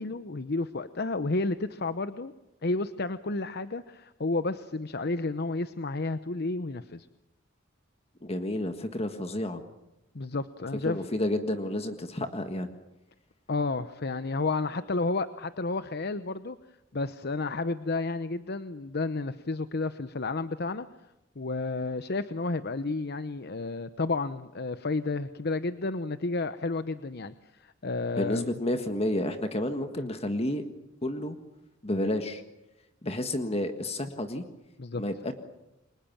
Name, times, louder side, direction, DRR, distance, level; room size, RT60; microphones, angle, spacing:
voice 1, 0.0-2.3 2.6-7.1 10.1-11.1 13.5-16.6 16.9-20.9 21.4-28.6 30.0-30.1 34.8-35.0, left 3 dB, 55° left, 12 dB, 0.9 m, -31 dB
voice 2, 8.2-9.6 10.8-12.7 28.2-30.6 31.0-31.4 31.8-32.4 33.0-34.4 35.0-35.3, left 1 dB, 30° left, 7 dB, 1.7 m, -30 dB
29.5 x 24.5 x 7.3 m, 0.93 s
head